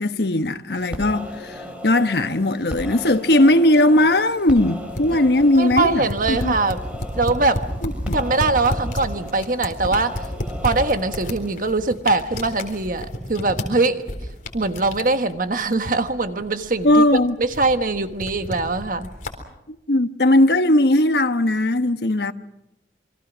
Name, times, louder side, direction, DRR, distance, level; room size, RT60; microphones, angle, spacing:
voice 1, 0.0-6.6 7.8-8.1 16.8-17.3 19.7-22.3, left 1 dB, 65° left, 1.1 m, -18 dB
sound 1, 0.7-11.6, equal, 5° right, 5.1 m, -36 dB
sound 2, 4.9-19.3, left 1 dB, 50° left, 3.9 m, -32 dB
voice 2, 5.5-6.8 7.1-7.6 8.1-10.1 10.6-14.0 14.5-17.0 17.4-19.1, right 3 dB, 50° right, 1.4 m, -22 dB
28.0 x 23.5 x 6.2 m
head